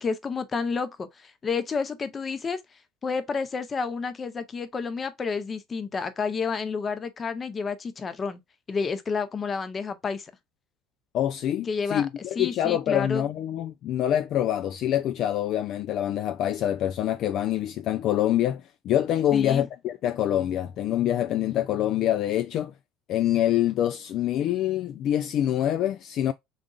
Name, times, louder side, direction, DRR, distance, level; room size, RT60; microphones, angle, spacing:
voice 1, 0.0-2.6 3.0-8.4 8.7-10.3 11.7-12.1 12.4-13.2 19.3-19.7, left 5 dB, 20° left, 0.7 m, -30 dB
voice 2, 11.1-22.7 23.1-26.3, left 11 dB, 45° left, 0.4 m, -25 dB
5.1 x 3.8 x 2.3 m
cardioid pair, 150°, 0 cm